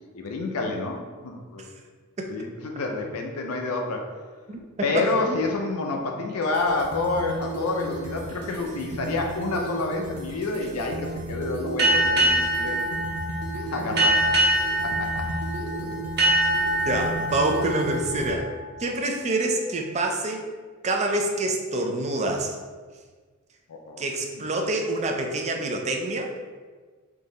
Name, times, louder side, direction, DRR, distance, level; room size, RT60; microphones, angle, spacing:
voice 1, 0.1-1.7 2.3-4.1 4.8-12.8 13.5-14.2 14.8-15.2 23.7-24.0, left 3 dB, 75° left, 2 dB, 0.5 m, -28 dB
voice 2, 4.5-5.4 16.9-18.5 18.8-20.5 20.8-22.6 24.0-26.3, right 2 dB, 30° right, 3 dB, 0.4 m, -26 dB
sound 1, 6.3-18.3, right 2 dB, 85° right, 0.5 m, -35 dB
sound 2, 11.8-19.1, right 1 dB, 50° right, 1.0 m, -24 dB
3.6 x 2.8 x 3.9 m, 1.4 s
head